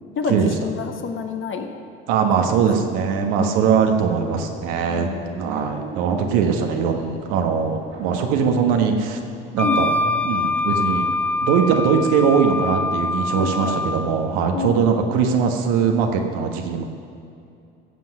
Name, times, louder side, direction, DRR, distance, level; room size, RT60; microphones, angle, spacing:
voice 1, 0.1-1.7 2.3-2.6 3.3-3.5 4.9-5.5 9.6-9.9 13.3-13.8 14.5-14.9, left 5 dB, 40° left, 4 dB, 1.5 m, -28 dB
voice 2, 2.1-5.1 5.4-9.2 9.5-9.9 10.2-11.1 11.4-16.8, right 6 dB, 70° right, 3 dB, 1.4 m, -21 dB
sound 1, 4.2-13.1, right 4 dB, 55° right, 2.3 m, -40 dB
Wind instrument woodwind instrument, 9.6-14.1, left 3 dB, 5° left, 0.6 m, -24 dB
16.0 x 7.7 x 5.6 m, 2.6 s
hypercardioid pair, 65°, 30 cm